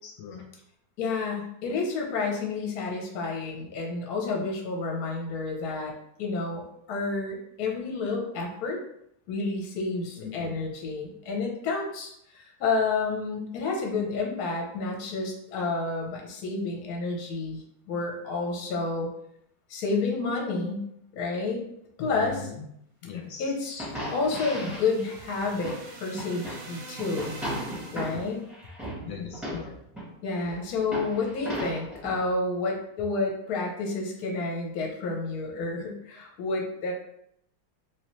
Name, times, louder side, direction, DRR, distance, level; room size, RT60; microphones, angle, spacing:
voice 1, 0.0-0.4 10.2-10.6 22.0-22.7 23.0-23.5 29.0-29.8, left 7 dB, 75° left, 1 dB, 1.3 m, -39 dB
voice 2, 1.0-5.9 6.2-6.6 6.9-8.8 9.3-19.1 19.7-20.9 21.1-21.7 22.0-22.5 23.4-27.4 27.9-28.4 30.2-36.9, left 3 dB, 60° left, 0 dB, 1.1 m, -30 dB
sound 1, 23.5-28.4, right 3 dB, 70° right, 1.1 m, -44 dB
sound 2, 23.8-25.8 26.2-26.7 27.0-30.1 30.4-32.3, equal, ahead, 0.7 m, -36 dB
3.1 x 2.9 x 3.0 m, 0.74 s
omnidirectional pair, 2.2 m